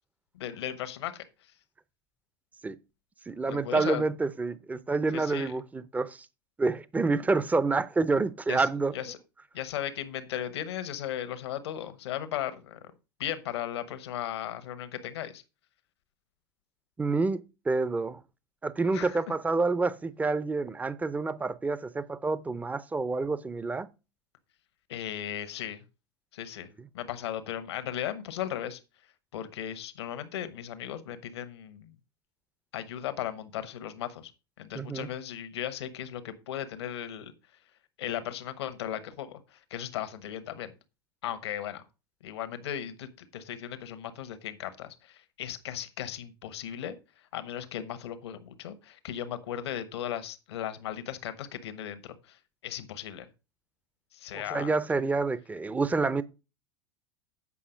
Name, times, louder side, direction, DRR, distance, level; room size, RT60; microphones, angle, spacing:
voice 1, 0.3-1.3 3.5-4.0 5.1-5.5 8.5-9.2 9.5-12.8 13.2-15.4 18.9-19.3 24.9-25.8 26.3-26.7 26.9-28.8 29.3-31.9 32.7-34.3 34.6-37.3 38.0-40.7 41.2-41.8 42.2-47.0 47.3-53.3 54.1-54.7, left 10 dB, 75° left, 1.1 m, -36 dB
voice 2, 3.3-6.3 6.6-8.9 17.0-18.2 18.6-23.9 34.7-35.1 54.3-56.2, right 3 dB, 10° right, 0.6 m, -28 dB
8.4 x 5.5 x 5.1 m
hypercardioid pair, 95°, 14 cm